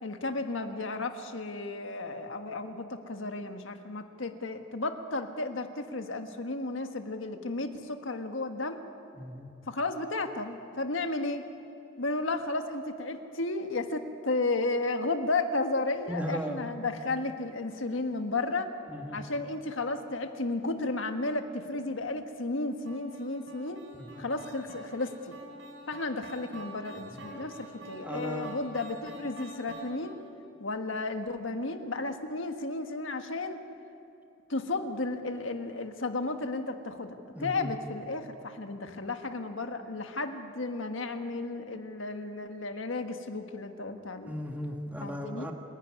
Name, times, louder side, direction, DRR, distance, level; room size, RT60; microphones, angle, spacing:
voice 1, 0.0-8.8 9.7-11.4 12.0-18.7 19.1-23.8 24.2-25.4 25.9-30.2 30.6-33.6 34.5-44.3 45.0-45.5, left 2 dB, 85° left, 6 dB, 1.5 m, -33 dB
voice 2, 9.2-9.5 16.1-16.6 18.9-19.2 23.9-24.2 27.1-27.3 28.0-28.6 37.3-37.7 44.2-45.5, equal, 10° right, 2 dB, 1.6 m, -37 dB
sound 1, 22.9-30.3, equal, 80° right, 3.5 m, -47 dB
28.0 x 11.0 x 9.7 m, 2.7 s
head